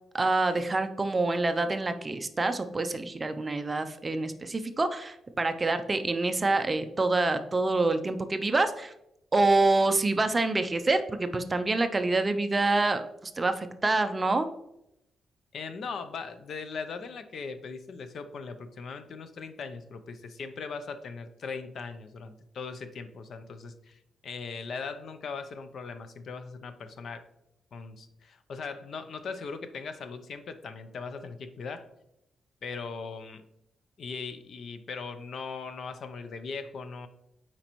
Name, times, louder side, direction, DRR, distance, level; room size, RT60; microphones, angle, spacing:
voice 1, 0.1-8.9 9.3-13.0 13.4-14.5, right 2 dB, 20° right, 9 dB, 0.4 m, -26 dB
voice 2, 15.5-27.2 27.7-31.9 32.6-33.4 34.0-37.1, left 5 dB, 55° left, 10 dB, 0.5 m, -39 dB
9.0 x 4.4 x 3.0 m, 0.83 s
wide cardioid pair, 155°, 0 cm